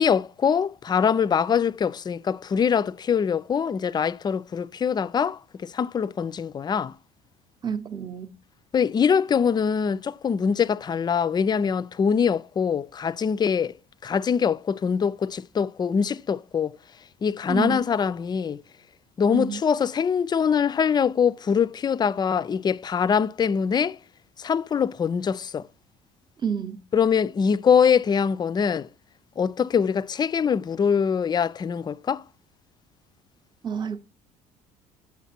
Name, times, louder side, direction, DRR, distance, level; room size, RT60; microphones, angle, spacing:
voice 1, 0.0-6.9 8.7-13.7 14.0-16.8 17.2-18.6 19.2-24.0 24.4-25.7 26.9-28.9 29.4-32.2, left 7 dB, 25° left, 0.3 m, -23 dB
voice 2, 7.6-8.3 17.5-17.8 19.3-19.6 26.4-26.8 33.6-34.0, right 7 dB, 25° right, 0.7 m, -28 dB
7.2 x 5.9 x 4.2 m
supercardioid pair, 75°, 17 cm